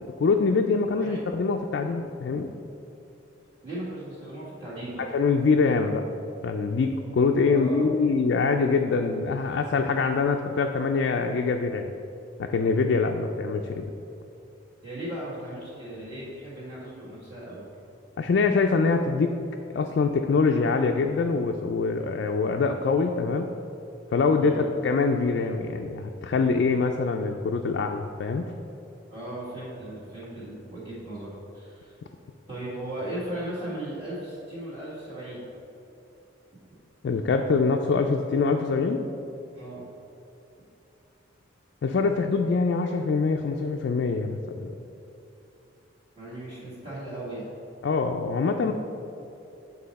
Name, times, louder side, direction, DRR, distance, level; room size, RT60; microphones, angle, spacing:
voice 1, 0.2-2.5 5.0-6.0 6.4-11.9 12.4-13.8 18.2-19.3 19.7-23.5 24.1-28.4 37.0-39.0 41.8-44.7 47.8-48.7, left 4 dB, 60° left, 3 dB, 0.3 m, -24 dB
voice 2, 3.6-5.0 7.4-7.8 14.8-17.6 24.4-24.6 29.1-31.9 32.5-35.4 39.5-39.8 46.2-47.5, right 1 dB, 30° right, -10 dB, 1.5 m, -37 dB
7.7 x 4.1 x 4.1 m, 2.9 s
head